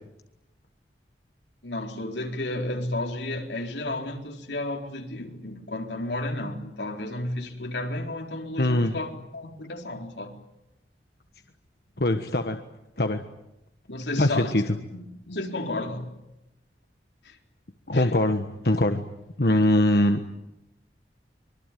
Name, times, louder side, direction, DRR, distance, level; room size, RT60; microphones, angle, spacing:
voice 1, 1.6-10.3 13.9-14.6 14.9-16.1 17.2-17.4 17.9-18.1, left 1 dB, 85° left, 4.2 m, -32 dB
voice 2, 8.6-8.9 12.0-12.6 13.0-13.2 14.2-14.8 17.9-19.0 19.4-20.2, left 1 dB, 60° left, 1.4 m, -22 dB
25.0 x 24.0 x 9.3 m
head